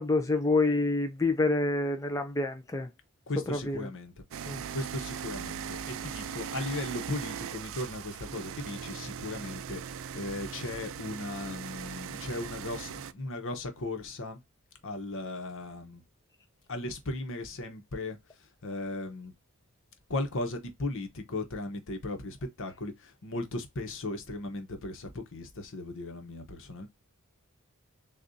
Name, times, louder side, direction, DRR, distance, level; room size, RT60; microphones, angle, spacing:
voice 1, 0.0-2.9 3.5-3.9 4.5-4.6, left 2 dB, 15° left, 0.4 m, -27 dB
voice 2, 3.3-4.2 4.7-14.4 14.8-16.0 16.7-19.3 20.1-26.9, left 2 dB, 60° left, 1.0 m, -37 dB
sound 1, 4.3-13.1, right 7 dB, 65° right, 0.4 m, -39 dB
6.5 x 2.4 x 2.7 m
head